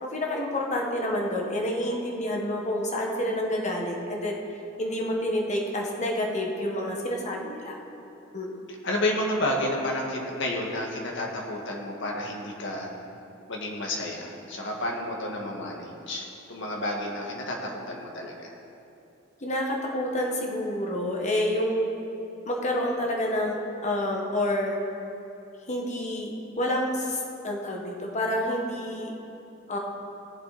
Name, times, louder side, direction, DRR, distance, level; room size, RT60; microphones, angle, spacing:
voice 1, 0.0-4.4 4.8-7.8 8.3-8.6 19.4-21.9 22.4-24.8 25.7-29.1 29.7-29.8, left 1 dB, 35° left, 0 dB, 1.5 m, -28 dB
voice 2, 8.8-12.9 13.5-18.5, left 1 dB, 65° left, 0 dB, 1.8 m, -31 dB
18.5 x 7.3 x 4.2 m, 2.8 s
head